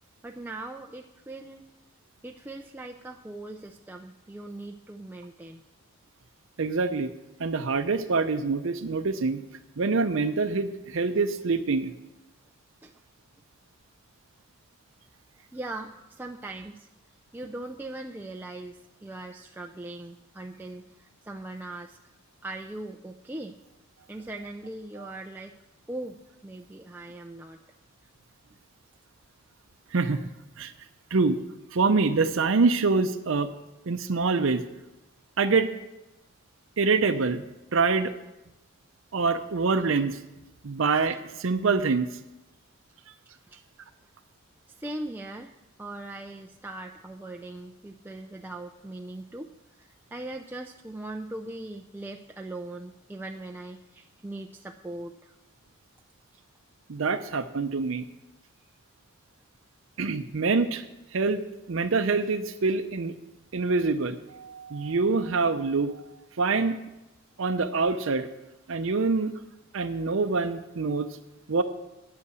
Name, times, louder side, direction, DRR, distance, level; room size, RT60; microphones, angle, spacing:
voice 1, 0.2-1.7 2.2-5.6 12.8-12.9 15.5-16.9 17.3-22.0 22.4-23.6 24.1-25.5 25.9-26.2 26.4-27.6 43.5-43.6 44.7-45.5 45.8-49.5 49.8-55.4, right 2 dB, 10° right, 2 dB, 0.4 m, -40 dB
voice 2, 6.6-7.1 7.4-9.4 9.8-11.9 29.9-30.2 30.6-30.7 31.1-31.4 31.7-33.5 33.9-34.6 35.4-35.7 36.8-37.4 37.7-38.1 39.1-40.2 40.6-42.1 56.9-58.0 60.0-60.9 61.1-61.4 61.7-63.1 63.5-65.9 66.4-66.8 67.4-68.3 68.7-69.3 69.7-71.1 71.5-71.6, right 4 dB, 65° right, 8 dB, 0.6 m, -25 dB
9.8 x 8.3 x 8.1 m, 0.98 s
head